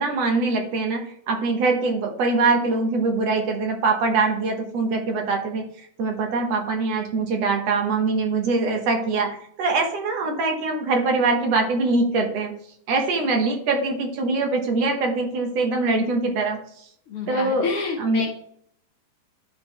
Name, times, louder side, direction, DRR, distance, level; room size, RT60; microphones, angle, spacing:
voice 1, 0.0-12.5 12.9-16.9 17.3-17.7 18.0-18.3, right 3 dB, 65° right, 3 dB, 2.0 m, -23 dB
voice 2, 17.1-18.3, left 4 dB, 60° left, 0 dB, 1.6 m, -28 dB
11.5 x 4.0 x 3.3 m, 0.68 s
omnidirectional pair, 3.7 m